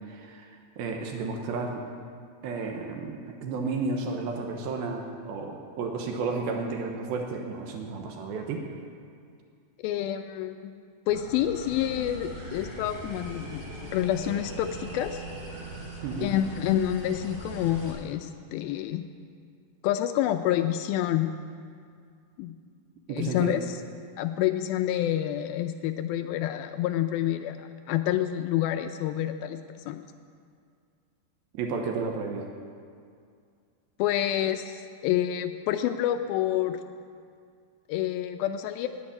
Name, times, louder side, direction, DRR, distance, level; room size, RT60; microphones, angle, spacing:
voice 1, 0.1-1.8 2.4-8.7 16.0-16.3 23.1-23.6 31.5-32.5, right 4 dB, 80° right, 2 dB, 2.8 m, -32 dB
voice 2, 9.8-10.7 11.1-15.2 16.2-19.0 19.8-21.3 22.4-22.5 23.1-23.8 24.2-29.6 29.9-30.0 34.0-36.8 37.9-38.9, left 12 dB, 85° left, 8 dB, 2.3 m, -28 dB
sound 1, 11.1-17.9, right 2 dB, 40° right, 4.9 m, -40 dB
10.5 x 8.5 x 9.8 m, 2.3 s
omnidirectional pair, 4.3 m